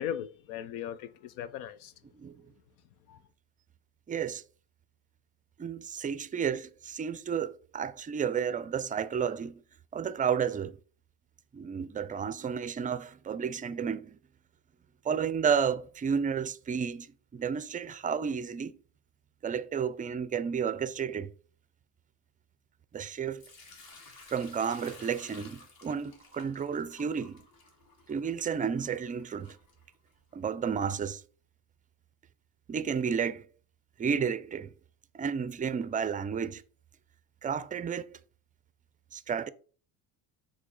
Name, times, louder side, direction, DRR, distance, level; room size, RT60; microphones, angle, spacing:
voice 1, 0.0-1.9 3.1-3.2, left 10 dB, 75° left, 0.6 m, -38 dB
voice 2, 4.1-4.4 5.6-9.6 9.9-10.8 11.5-14.2 15.0-17.1 17.3-18.7 19.4-21.3 22.9-23.4 24.3-27.4 28.1-29.6 30.3-31.2 32.7-33.5 34.0-34.7 35.1-36.6 37.4-38.2 39.1-39.5, right 7 dB, 20° right, 0.4 m, -32 dB
Sink (filling or washing) / Liquid, 23.4-30.3, left 3 dB, 45° left, 2.2 m, -54 dB
6.0 x 3.3 x 5.3 m
supercardioid pair, 85°, 47 cm